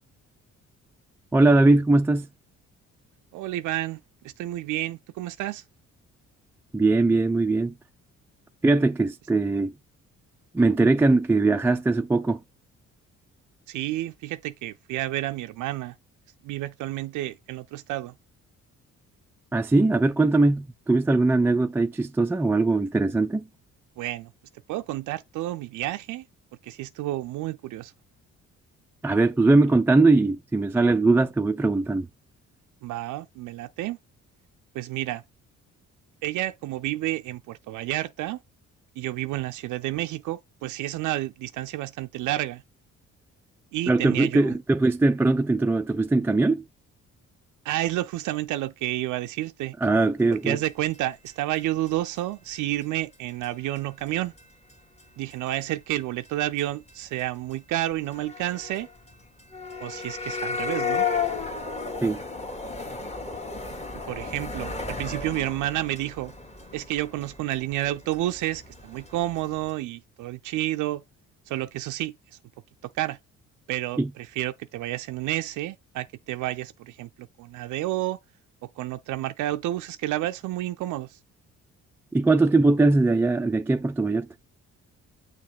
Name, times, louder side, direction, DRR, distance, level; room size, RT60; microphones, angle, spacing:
voice 1, 1.3-2.3 6.7-7.7 8.6-9.7 10.5-12.4 19.5-23.4 29.0-32.1 43.9-46.6 49.8-50.6 62.0-62.2 74.0-74.1 82.1-84.3, right 2 dB, 10° right, 0.3 m, -21 dB
voice 2, 3.3-4.0 4.2-5.6 13.7-15.9 16.4-18.1 24.0-24.3 24.7-26.3 26.6-27.9 32.8-34.0 34.7-35.2 36.2-38.4 39.0-42.6 43.7-44.5 47.6-49.7 50.4-54.3 55.2-58.9 59.8-61.1 64.1-66.3 66.7-71.0 71.5-72.4 72.8-73.2 73.7-78.2 78.8-81.2, right 15 dB, 80° right, 0.4 m, -30 dB
sound 1, 50.6-50.7 50.9-51.0 51.2-51.3 51.6-51.7 51.9-52.0 52.2-52.3 52.5-52.8 53.1-53.2 53.4-53.5 53.8-54.0 54.4-54.5 54.7-55.3 55.6-55.9 56.2-56.3 56.6-56.7 56.9-57.0 57.2-57.3 57.5-57.6 57.8-69.7, left 5 dB, 20° left, 1.6 m, -34 dB
6.4 x 3.0 x 5.8 m
cardioid pair, 90°, 30 cm